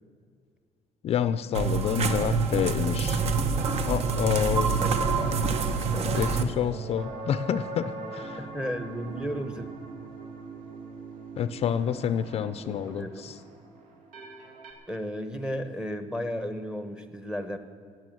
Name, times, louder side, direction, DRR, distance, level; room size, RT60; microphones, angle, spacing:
voice 1, 1.0-3.2 3.8-4.8 6.2-8.4 11.4-13.3, left 9 dB, 50° left, 14 dB, 0.4 m, -28 dB
sound 1, 1.5-6.4, right 4 dB, 50° right, 0.9 m, -26 dB
sound 2, 3.5-14.7, right 3 dB, 80° right, 2.4 m, -42 dB
voice 2, 4.8-5.6 5.9-6.6 8.4-9.7 12.6-13.3 14.9-17.6, equal, 5° right, 9 dB, 0.9 m, -35 dB
18.0 x 7.8 x 7.7 m, 2.2 s
cardioid pair, 160°, 13 cm